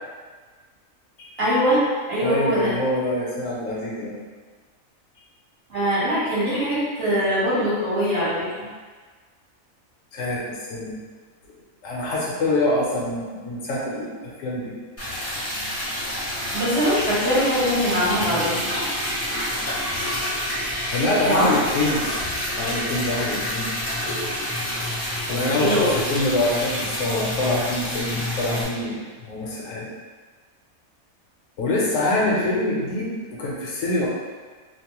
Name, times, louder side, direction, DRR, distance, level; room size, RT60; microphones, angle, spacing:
voice 1, 1.4-1.8 2.1-2.7 5.7-8.3 16.5-18.6 21.2-21.5 25.6-25.9, equal, 60° right, -10 dB, 1.4 m, -22 dB
voice 2, 2.2-4.2 10.1-11.0 11.8-14.7 20.9-22.2 22.6-23.7 25.3-29.0 29.3-29.9 31.6-34.1, left 1 dB, 75° left, -4 dB, 1.0 m, -25 dB
Liquid, 15.0-28.6, left 1 dB, 15° left, 0.6 m, -28 dB
2.9 x 2.1 x 2.9 m, 1.5 s
omnidirectional pair, 1.4 m